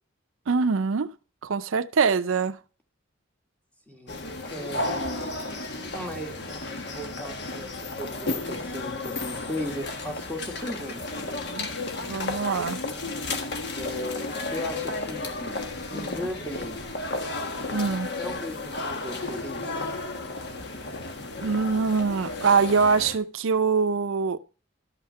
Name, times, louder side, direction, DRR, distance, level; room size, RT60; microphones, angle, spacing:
voice 1, 0.5-1.1 1.4-2.6 11.5-11.7 12.1-12.8 17.7-18.1 21.4-24.4, right 5 dB, 80° right, 0.5 m, -24 dB
voice 2, 3.9-4.2 4.5-5.4 5.8-6.4 6.8-7.7 8.0-11.2 13.8-15.5 15.9-16.8 18.2-19.8, left 1 dB, 5° left, 1.5 m, -37 dB
sound 1, 4.1-23.2, left 2 dB, 55° left, 1.4 m, -33 dB
12.5 x 5.7 x 5.5 m
head